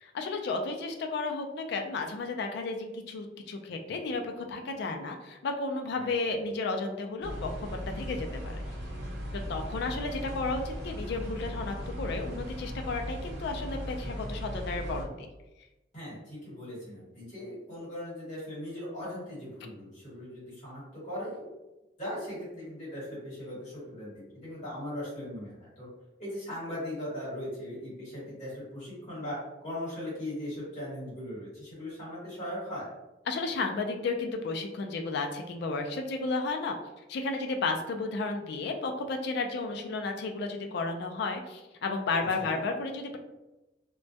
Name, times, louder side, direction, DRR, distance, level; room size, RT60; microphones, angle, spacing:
voice 1, 0.0-7.7 7.9-8.6 9.5-15.3 33.3-36.8 37.1-43.2, left 3 dB, 55° left, 4 dB, 0.3 m, -33 dB
voice 2, 5.9-6.4 15.9-21.5 22.0-25.9 26.2-32.8 42.4-42.6, left 1 dB, 35° left, -9 dB, 1.2 m, -39 dB
sound 1, 7.2-15.0, equal, 60° right, 0.5 m, -37 dB
2.2 x 2.2 x 2.6 m, 1.0 s
head